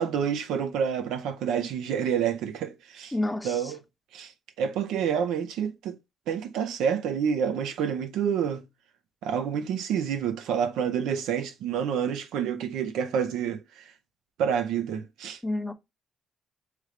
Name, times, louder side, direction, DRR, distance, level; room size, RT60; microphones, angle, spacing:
voice 1, 0.0-3.1 3.4-3.8 4.1-4.3 4.6-6.0 6.3-8.6 9.2-13.8 14.4-15.4, right 8 dB, 90° right, 0.6 m, -28 dB
voice 2, 3.1-3.7 15.4-15.7, left 1 dB, 10° left, 0.6 m, -29 dB
3.2 x 3.2 x 3.7 m
cardioid pair, 90°, 0 cm